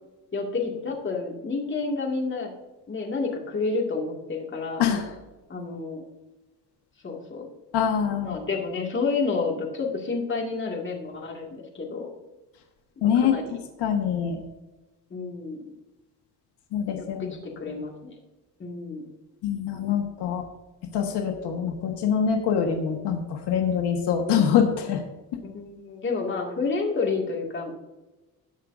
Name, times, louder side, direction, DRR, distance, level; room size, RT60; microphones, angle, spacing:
voice 1, 0.3-2.5 2.9-4.8 5.5-6.0 7.0-7.5 8.2-12.1 13.0-13.6 15.1-15.6 17.0-18.2 18.6-19.1 25.4-27.7, left 4 dB, 30° left, 0 dB, 2.3 m, -30 dB
voice 2, 7.7-8.4 13.0-13.4 13.8-14.4 16.7-17.3 19.4-20.4 20.9-25.0, left 7 dB, 80° left, 3 dB, 1.6 m, -24 dB
18.5 x 6.3 x 2.7 m, 1.1 s
cardioid pair, 125°, 40 cm